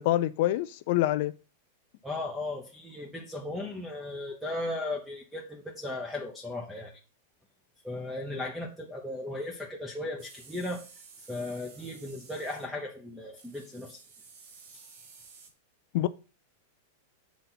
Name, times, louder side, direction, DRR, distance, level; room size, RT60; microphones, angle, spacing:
voice 1, 0.0-1.3 15.9-16.1, left 14 dB, 50° left, 0.4 m, -26 dB
voice 2, 2.0-6.9 7.8-10.9 11.3-14.0, left 2 dB, ahead, 0.8 m, -36 dB
sound 1, 10.2-12.7 13.4-15.5, right 5 dB, 50° right, 1.8 m, -53 dB
8.0 x 4.2 x 5.9 m
supercardioid pair, 165°, 0 cm